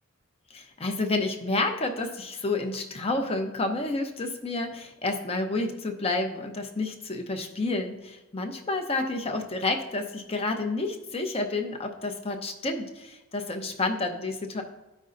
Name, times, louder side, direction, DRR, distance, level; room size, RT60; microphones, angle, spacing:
voice 1, 0.5-14.6, left 2 dB, 30° left, 5 dB, 0.6 m, -30 dB
13.0 x 5.3 x 2.6 m, 1.0 s
head